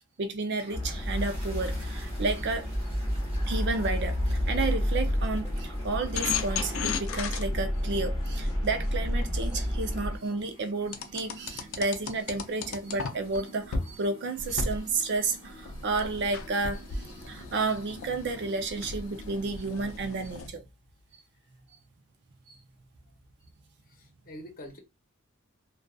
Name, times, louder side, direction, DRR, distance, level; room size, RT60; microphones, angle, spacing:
voice 1, 0.2-2.7 3.5-20.7 22.5-22.6, right 3 dB, 55° right, 0.5 m, -31 dB
sound 1, 0.6-20.4, right 1 dB, 25° right, 1.2 m, -51 dB
sound 2, 0.7-10.2, equal, 20° left, 0.9 m, -30 dB
sound 3, 6.1-10.0 10.9-13.4 13.7-13.9 14.4-20.5, left 5 dB, 65° left, 0.5 m, -36 dB
voice 2, 23.9-24.8, equal, 45° left, 0.9 m, -45 dB
2.6 x 2.3 x 2.3 m
head